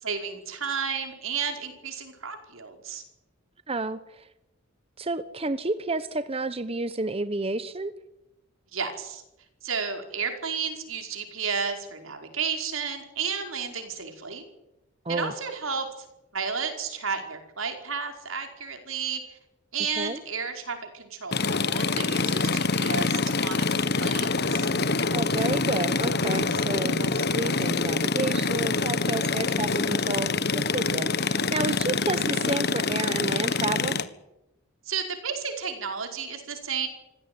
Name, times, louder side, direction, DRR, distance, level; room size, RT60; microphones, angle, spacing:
voice 1, 0.0-3.0 8.7-9.2 9.6-14.4 15.1-16.0 16.3-19.4 19.7-24.7 34.9-36.9, right 6 dB, 85° right, 5 dB, 5.1 m, -32 dB
voice 2, 3.7-4.3 5.0-7.9 15.0-15.3 19.8-20.2 25.1-34.0, right 2 dB, 30° right, 12 dB, 1.0 m, -31 dB
sound 1, 21.3-34.0, left 4 dB, 55° left, 1.5 m, -25 dB
25.5 x 16.5 x 9.5 m, 0.91 s
head